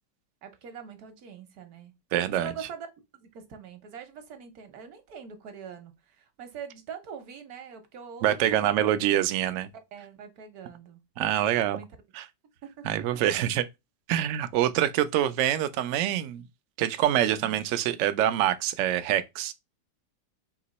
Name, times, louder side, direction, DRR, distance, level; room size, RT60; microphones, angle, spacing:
voice 1, 0.4-1.9 2.4-2.9 3.1-9.1 9.9-11.0 11.6-11.9 12.6-13.0 17.3-17.6, right 7 dB, 65° right, 1.2 m, -43 dB
voice 2, 2.1-2.5 8.2-9.7 11.2-11.8 12.1-12.3 12.8-13.6 14.1-16.5 16.8-19.5, right 11 dB, 80° right, 0.7 m, -25 dB
3.7 x 2.9 x 3.9 m
omnidirectional pair, 1.9 m